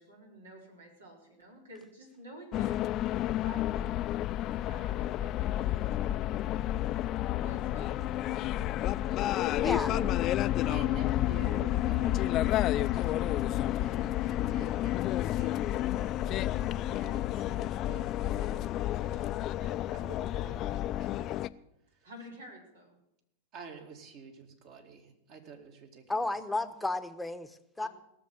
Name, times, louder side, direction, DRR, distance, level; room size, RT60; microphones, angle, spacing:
voice 1, 0.0-4.1 4.4-5.6 6.5-7.0 7.4-8.9 9.6-10.0 22.0-23.0, right 1 dB, 85° right, 0 dB, 4.0 m, -50 dB
sound 1, 2.5-21.5, left 13 dB, 40° left, 0.4 m, -30 dB
voice 2, 9.6-9.9 26.1-27.9, left 2 dB, 5° left, 9 dB, 1.0 m, -33 dB
voice 3, 10.6-13.4 13.8-21.3 23.5-26.3 27.8-27.9, right 6 dB, 50° right, 4 dB, 2.3 m, -49 dB
17.5 x 6.9 x 7.8 m, 0.83 s
hypercardioid pair, 100°, 0 cm